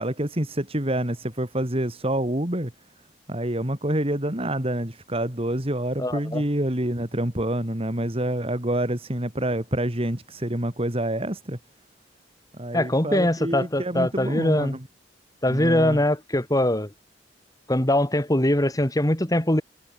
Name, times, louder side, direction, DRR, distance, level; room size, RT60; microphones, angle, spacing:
voice 1, 0.0-2.7 3.3-11.6 12.5-14.9 15.5-16.0, right 1 dB, 30° right, 2.9 m, -27 dB
voice 2, 6.0-6.4 12.7-14.7 15.4-16.9 17.7-19.6, left 1 dB, 20° left, 2.2 m, -22 dB
head